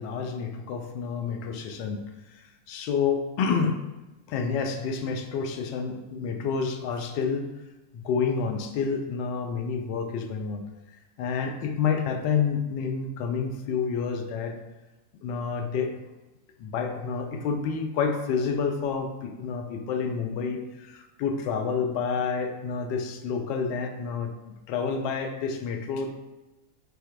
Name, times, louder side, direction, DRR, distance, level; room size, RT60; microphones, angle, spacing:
voice 1, 0.0-2.0 2.3-2.4 2.7-3.8 4.3-7.5 7.9-10.6 11.2-14.6 15.2-16.0 16.6-24.3 24.7-26.1, left 5 dB, 45° left, 5 dB, 0.5 m, -29 dB
4.4 x 3.4 x 2.3 m, 1.1 s
figure-of-eight pair, 90°, 0 cm